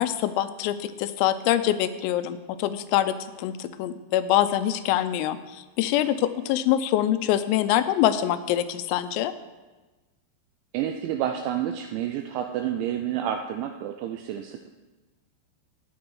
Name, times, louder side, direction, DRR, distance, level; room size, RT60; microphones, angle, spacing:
voice 1, 0.0-9.3, left 12 dB, 90° left, 11 dB, 3.3 m, -25 dB
voice 2, 10.7-14.7, right 10 dB, 90° right, 5 dB, 2.6 m, -29 dB
13.5 x 9.5 x 4.7 m, 1.2 s
omnidirectional pair, 5.9 m